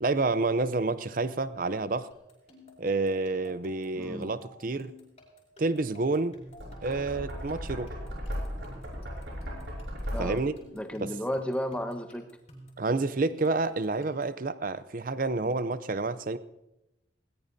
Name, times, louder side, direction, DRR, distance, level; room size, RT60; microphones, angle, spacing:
voice 1, 0.0-2.1 2.8-4.9 5.6-6.4 6.8-7.9 10.2-10.5 11.0-11.1 12.8-16.4, right 3 dB, 45° right, 13 dB, 0.6 m, -29 dB
sound 1, 2.1-14.4, equal, 35° left, 5.7 m, -52 dB
voice 2, 3.9-4.3 10.1-10.4 10.7-12.2, equal, 5° left, 5 dB, 1.2 m, -33 dB
Knock, 6.5-10.6, equal, 75° right, 6.2 m, -36 dB
20.5 x 19.5 x 2.8 m, 0.91 s
head